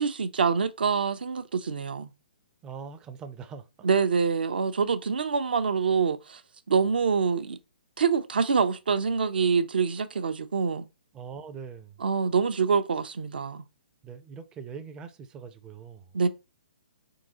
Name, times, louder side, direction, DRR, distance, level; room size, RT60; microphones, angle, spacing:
voice 1, 0.0-2.1 3.8-6.4 6.7-7.6 8.0-10.9 12.0-13.6 16.1-16.3, right 5 dB, 70° right, 0.6 m, -25 dB
voice 2, 2.6-3.9 11.1-12.0 14.0-16.1, right 6 dB, 15° right, 0.4 m, -42 dB
4.6 x 3.7 x 2.8 m
hypercardioid pair, 140°, 5 cm